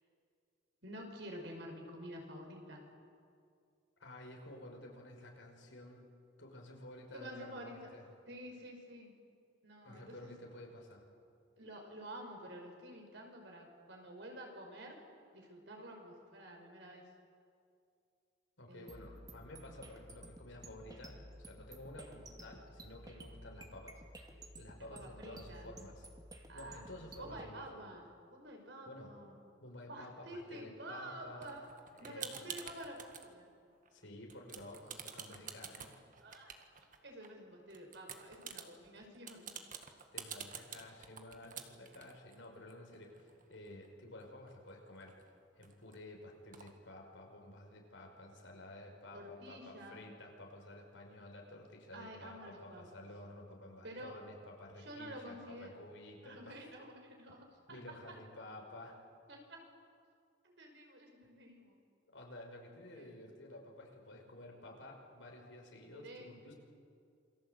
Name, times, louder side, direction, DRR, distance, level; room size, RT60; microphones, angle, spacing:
voice 1, 0.8-2.8 7.1-7.9 8.3-9.1 9.6-10.3 11.6-15.0 15.3-17.1 18.7-19.1 24.9-25.7 26.5-26.8 27.2-29.4 29.9-31.6 32.0-33.5 36.2-36.5 37.0-39.5 49.1-50.0 51.9-53.1 53.8-54.1 54.8-55.7 56.2-58.2 59.3-59.6 60.4-61.8 62.9-63.1 65.9-66.3, right 1 dB, 65° right, 2 dB, 5.6 m, -50 dB
voice 2, 4.0-6.1 6.4-8.0 9.8-11.1 18.6-24.0 24.6-26.0 26.5-27.8 28.9-29.1 29.6-31.5 32.0-32.5 33.9-35.9 40.1-45.2 45.6-56.6 57.7-59.0 62.1-66.5, left 1 dB, 80° left, 1 dB, 5.8 m, -52 dB
sound 1, 18.9-27.5, right 1 dB, 20° right, 2.3 m, -53 dB
sound 2, 31.4-33.3 33.7-34.0 34.3-37.3 37.7-43.9 44.2-44.3 44.5-46.0 46.5-46.7, right 7 dB, 45° right, 1.8 m, -49 dB
28.0 x 22.5 x 8.4 m, 2.4 s
head